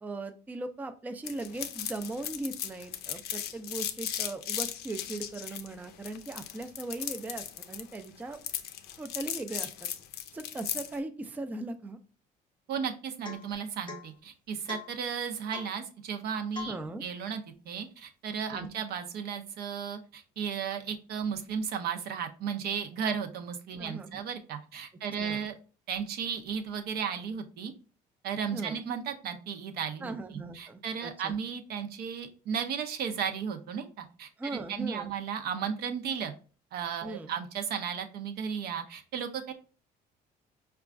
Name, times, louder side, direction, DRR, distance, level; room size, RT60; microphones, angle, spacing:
voice 1, 0.0-8.4 9.0-9.7 10.3-12.0 16.7-17.0 18.5-18.7 23.8-24.2 25.2-25.4 28.5-28.8 30.0-31.3 34.4-35.1 37.0-37.3, right 2 dB, 10° right, 8 dB, 0.3 m, -39 dB
sound 1, 1.3-11.0, left 10 dB, 75° left, 0.4 m, -37 dB
voice 2, 12.7-25.5 25.9-27.7 28.2-30.1 30.5-36.3 36.7-39.5, right 7 dB, 70° right, 6 dB, 0.6 m, -35 dB
Domestic sounds home sounds / Chink clink / Drip, 13.2-13.5 13.9-14.1 14.7-15.0 15.5-15.8 16.5-16.8, left 6 dB, 25° left, 0.7 m, -42 dB
4.9 x 2.3 x 2.4 m, 0.37 s
cardioid pair, 110°, 17 cm